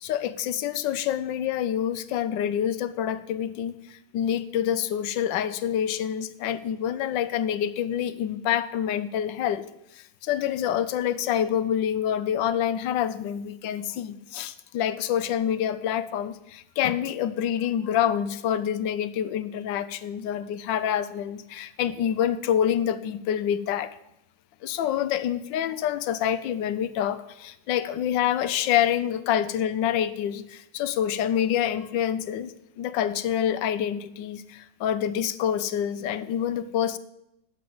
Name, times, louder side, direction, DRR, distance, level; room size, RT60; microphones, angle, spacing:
voice 1, 0.0-9.6 9.9-24.0 24.6-37.0, left 9 dB, 90° left, 14 dB, 1.4 m, -27 dB
9.2 x 6.9 x 7.8 m, 0.82 s
omnidirectional pair, 2.0 m